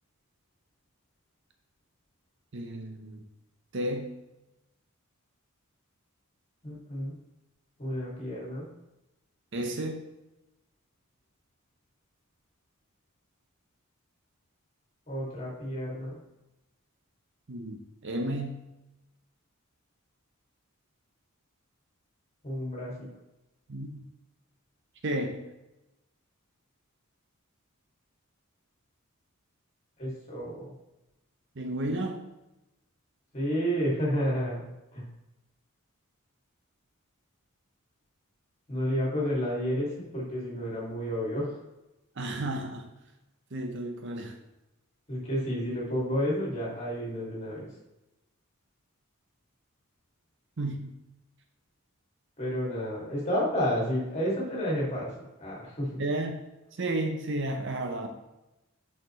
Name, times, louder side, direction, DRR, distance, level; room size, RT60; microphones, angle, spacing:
voice 1, 2.5-3.2 3.7-4.1 9.5-10.0 17.5-18.6 23.7-24.0 25.0-25.4 31.6-32.2 42.2-42.9 43.5-44.4 50.6-50.9 56.0-56.4 56.8-58.1, right 1 dB, 55° right, 4 dB, 0.7 m, -32 dB
voice 2, 6.6-7.1 7.8-8.7 15.1-16.2 22.4-23.1 30.0-30.7 33.3-35.0 38.7-41.6 45.1-47.7 52.4-56.0, equal, 30° left, -4 dB, 2.4 m, -31 dB
6.6 x 5.9 x 3.1 m, 0.95 s
head